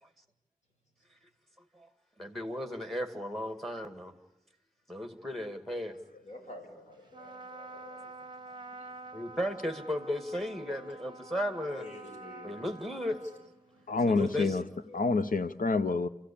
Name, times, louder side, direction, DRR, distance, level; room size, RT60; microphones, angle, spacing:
voice 1, 2.2-4.1 4.9-6.0 9.1-11.9 12.4-13.2 14.0-14.5, equal, ahead, 2.2 m, -35 dB
voice 2, 6.2-8.1 11.7-12.6 13.1-13.3 13.9-14.3 14.8-15.0, left 2 dB, 50° left, 6.3 m, -49 dB
Trumpet, 7.1-13.9, right 2 dB, 30° right, 0.9 m, -48 dB
voice 3, 13.9-14.6 14.9-16.1, left 3 dB, 70° left, 0.9 m, -27 dB
29.0 x 14.5 x 8.7 m
wide cardioid pair, 95°, 15 cm